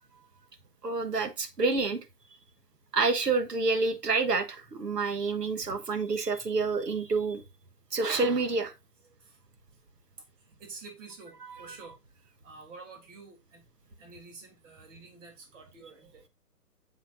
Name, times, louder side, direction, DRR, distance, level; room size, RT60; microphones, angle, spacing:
voice 1, 0.8-2.0 2.9-7.4 7.9-8.7 11.7-11.8, right 3 dB, 85° right, 1.5 m, -28 dB
voice 2, 10.4-13.6 14.0-16.3, right 4 dB, 50° right, 3.3 m, -49 dB
7.2 x 5.9 x 2.6 m
hypercardioid pair, 140°, 47 cm